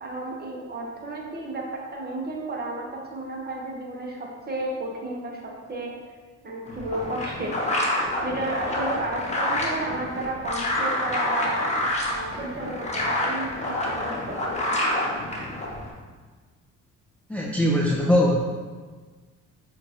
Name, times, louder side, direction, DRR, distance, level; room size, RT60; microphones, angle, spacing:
voice 1, 0.0-6.0 6.4-7.8 8.2-14.9, right 2 dB, 30° right, -2 dB, 1.0 m, -33 dB
sound 1, 6.7-15.9, left 1 dB, 20° left, 0.8 m, -27 dB
voice 2, 17.3-18.4, equal, 5° left, -3 dB, 0.4 m, -21 dB
5.9 x 2.6 x 2.8 m, 1.4 s
cardioid pair, 90°, 30 cm